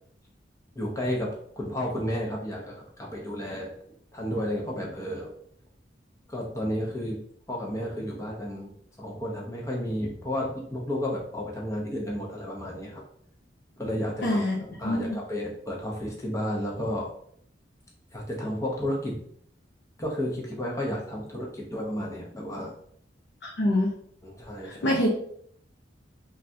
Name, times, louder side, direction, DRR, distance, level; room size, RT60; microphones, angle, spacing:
voice 1, 0.7-1.3 1.6-3.7 4.1-5.3 6.3-7.2 7.5-8.7 9.0-13.0 13.8-14.4 14.8-17.1 18.1-19.2 20.0-22.7 24.2-25.0, equal, 15° left, -2 dB, 0.6 m, -32 dB
voice 2, 14.2-14.6 14.8-15.2 23.4-23.9 24.6-25.1, left 1 dB, 65° left, -3 dB, 0.6 m, -25 dB
3.3 x 2.4 x 2.6 m, 0.65 s
head